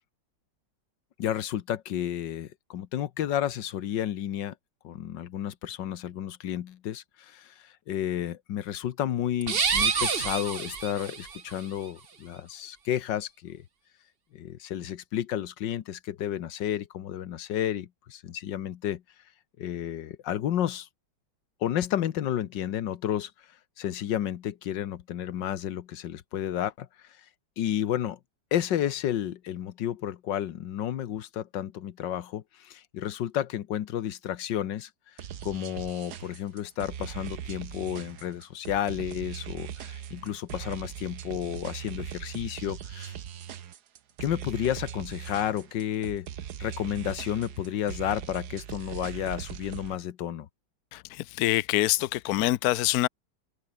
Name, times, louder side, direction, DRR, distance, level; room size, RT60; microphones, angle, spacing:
voice 1, 1.2-4.5 4.8-13.6 14.3-19.0 19.6-20.9 21.6-23.3 23.8-26.9 27.6-28.2 28.5-34.9 35.4-43.1 44.2-46.3 46.6-50.5, left 11 dB, 85° left, 1.7 m, -31 dB
sound 1, 9.4-11.4, right 6 dB, 35° right, 1.2 m, -27 dB
sound 2, 35.2-50.0, right 9 dB, 65° right, 1.6 m, -40 dB
voice 2, 50.9-53.1, left 16 dB, 65° left, 1.0 m, -25 dB
omnidirectional pair, 1.9 m